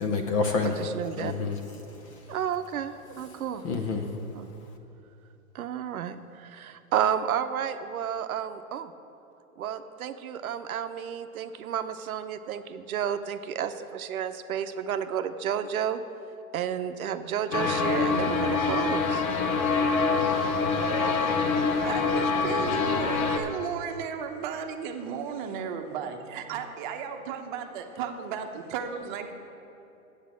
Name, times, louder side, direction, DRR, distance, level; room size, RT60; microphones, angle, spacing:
voice 1, 0.0-0.9 1.2-2.4 3.3-4.7, left 4 dB, 25° left, 4 dB, 0.5 m, -30 dB
voice 2, 0.8-1.3 2.3-3.6 4.3-4.5 5.5-8.9 9.6-16.0 16.5-19.3, right 9 dB, 75° right, 9 dB, 0.8 m, -31 dB
sound 1, 17.5-23.4, left 4 dB, 70° left, 1.3 m, -25 dB
voice 3, 20.8-21.2 21.8-29.3, right 7 dB, 35° right, 5 dB, 0.9 m, -34 dB
8.4 x 8.1 x 7.4 m, 2.8 s
hypercardioid pair, 140°, 43 cm